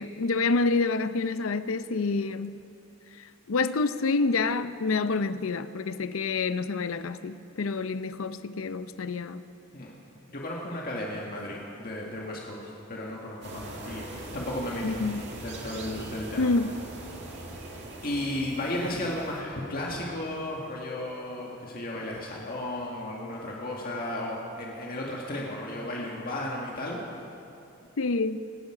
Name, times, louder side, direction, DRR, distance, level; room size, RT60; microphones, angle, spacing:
voice 1, 0.0-2.6 3.5-9.4 14.8-15.2 16.4-16.7 28.0-28.4, left 3 dB, 75° left, 0.6 m, -27 dB
voice 2, 10.3-14.1 14.3-15.0 15.4-16.5 17.3-17.5 18.0-27.3, left 1 dB, 45° left, 1.9 m, -34 dB
sound 1, 13.4-19.4, right 1 dB, 60° right, 2.0 m, -41 dB
25.5 x 10.5 x 5.0 m
head